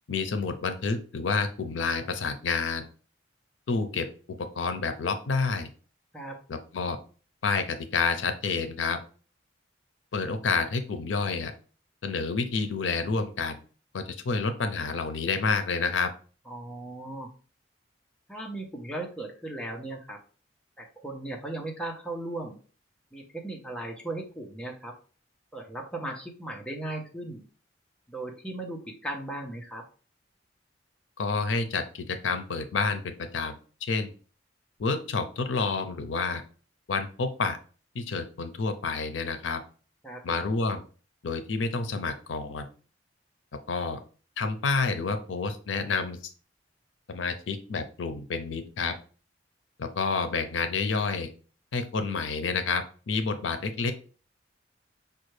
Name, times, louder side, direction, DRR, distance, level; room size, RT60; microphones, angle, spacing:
voice 1, 0.1-2.9 3.7-5.7 6.5-7.0 7.4-9.0 10.1-11.5 12.0-13.6 13.9-16.1 31.2-33.6 33.9-34.1 34.8-36.4 36.9-37.6 37.9-39.6 40.2-40.8 41.2-42.7 43.7-44.0 44.4-46.3 47.1-48.9 49.8-51.3 51.7-53.9, left 4 dB, 85° left, 9 dB, 0.5 m, -29 dB
voice 2, 16.5-17.3 18.3-20.2 20.8-22.6 23.1-25.0 25.5-27.4 28.1-29.9 40.0-40.2, right 2 dB, 5° left, 0 dB, 0.7 m, -37 dB
5.4 x 2.3 x 3.1 m, 0.39 s
head